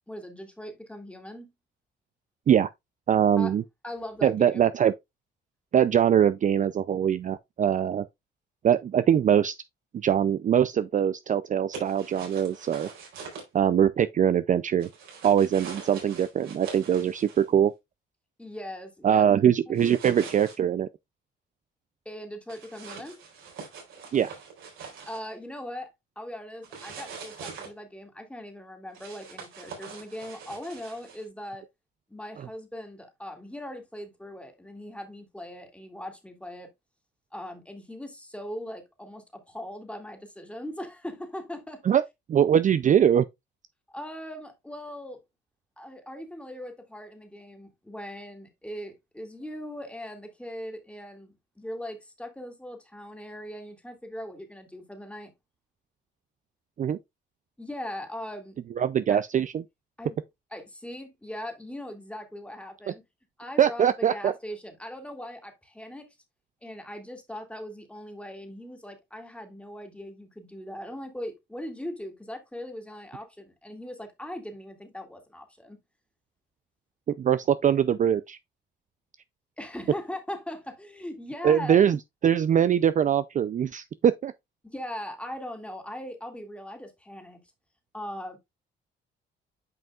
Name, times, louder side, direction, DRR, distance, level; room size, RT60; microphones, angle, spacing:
voice 1, 0.1-1.5 3.4-3.5 3.8-4.6 18.4-19.3 22.1-23.2 25.1-31.6 32.1-36.7 37.3-41.8 43.9-45.2 45.8-55.3 57.6-58.6 59.1-59.2 60.0-60.2 60.5-63.0 63.4-66.2 66.6-75.8 79.6-81.8 84.6-87.4 87.9-88.4, left 1 dB, 5° left, 2.2 m, -40 dB
voice 2, 3.1-3.6 4.2-4.9 5.7-8.0 8.6-9.5 10.0-12.9 13.5-14.9 15.2-17.7 19.0-20.9 24.1-24.3 32.4-32.5 41.8-42.0 42.3-43.2 56.8-57.0 58.8-59.6 63.6-64.3 77.1-78.4 81.4-82.0 82.2-84.3, right 9 dB, 40° right, 0.4 m, -22 dB
sound 1, 11.7-13.4 14.8-17.4 19.8-20.6 22.5-25.3 26.6-27.7 28.9-31.2, right 5 dB, 85° right, 3.9 m, -43 dB
9.1 x 5.4 x 2.3 m
cardioid pair, 90°, 20 cm